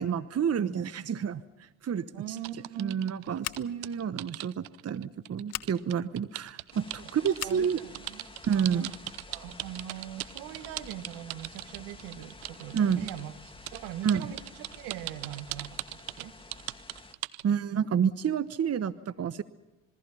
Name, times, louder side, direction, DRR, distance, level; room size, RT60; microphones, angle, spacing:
voice 1, 0.0-2.4 2.8-7.8 8.5-8.9 12.7-13.1 14.0-14.3 17.4-19.4, right 7 dB, 35° right, 14 dB, 1.1 m, -29 dB
voice 2, 2.1-3.0 7.0-7.1 7.4-8.3 8.5-8.9 9.3-13.4 13.7-15.8 16.1-16.3, right 11 dB, 70° right, 9 dB, 2.0 m, -41 dB
sound 1, 2.4-13.2 13.7-17.5, right 18 dB, 90° right, 0.7 m, -39 dB
Scissors, 3.4-3.9 5.5-5.7 7.3-7.6, left 18 dB, 75° left, 1.3 m, -37 dB
sound 2, 6.7-17.1, left 2 dB, 15° left, 2.6 m, -50 dB
26.5 x 22.5 x 5.7 m, 1.0 s
hypercardioid pair, 60°, 41 cm